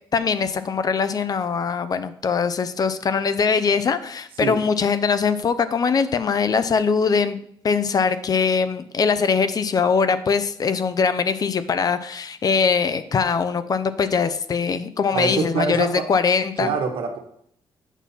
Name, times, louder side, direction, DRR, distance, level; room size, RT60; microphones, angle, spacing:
voice 1, 0.1-7.4 7.6-16.7, left 5 dB, 45° left, 12 dB, 0.6 m, -22 dB
voice 2, 15.1-16.1 16.6-17.2, right 6 dB, 80° right, 4 dB, 1.3 m, -25 dB
8.2 x 5.8 x 4.2 m, 0.67 s
cardioid pair, 90°, 9 cm